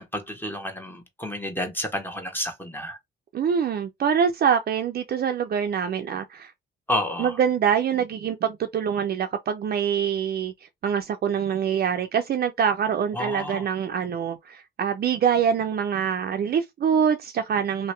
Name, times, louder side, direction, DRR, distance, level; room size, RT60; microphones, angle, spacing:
voice 1, 0.0-3.0 6.9-7.4 13.1-13.6, left 1 dB, 10° left, 1.1 m, -30 dB
voice 2, 3.3-6.5 7.2-10.5 10.8-17.9, right 7 dB, 50° right, 0.5 m, -24 dB
2.9 x 2.8 x 3.2 m
cardioid pair, 90°, 20 cm